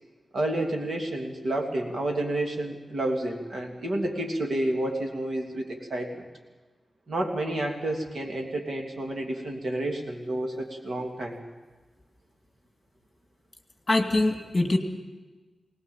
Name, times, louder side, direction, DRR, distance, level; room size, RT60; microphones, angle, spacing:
voice 1, 0.3-6.3 7.1-11.4, right 1 dB, 55° right, 1 dB, 2.9 m, -30 dB
voice 2, 13.9-14.8, left 2 dB, 20° left, 4 dB, 2.3 m, -23 dB
21.5 x 19.0 x 7.4 m, 1.3 s
wide cardioid pair, 165°, 0 cm